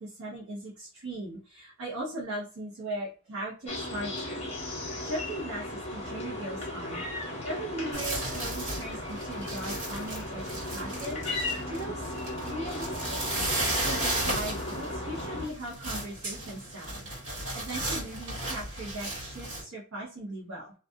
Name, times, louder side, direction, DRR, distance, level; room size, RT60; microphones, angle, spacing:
voice 1, 0.0-4.2 5.0-7.0 7.4-11.2 11.7-12.1 12.4-13.2 13.8-17.0 17.5-20.7, right 1 dB, 80° right, -6 dB, 0.9 m, -38 dB
sound 1, 3.7-15.5, left 1 dB, 30° left, 0.9 m, -36 dB
sound 2, 7.9-19.6, right 1 dB, 60° right, 1.5 m, -35 dB
2.5 x 2.3 x 2.5 m, 0.37 s
head